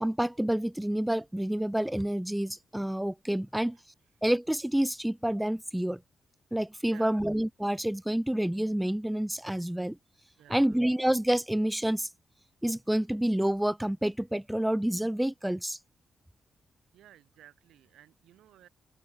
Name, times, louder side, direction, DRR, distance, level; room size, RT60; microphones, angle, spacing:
voice 1, 0.0-3.8 4.2-6.0 6.5-10.0 10.5-12.1 12.6-15.8, right 1 dB, 5° right, 0.4 m, -28 dB
voice 2, 6.9-7.2 10.4-10.8 16.9-18.7, right 12 dB, 85° right, 3.7 m, -55 dB
open air
supercardioid pair, 55°, 0 cm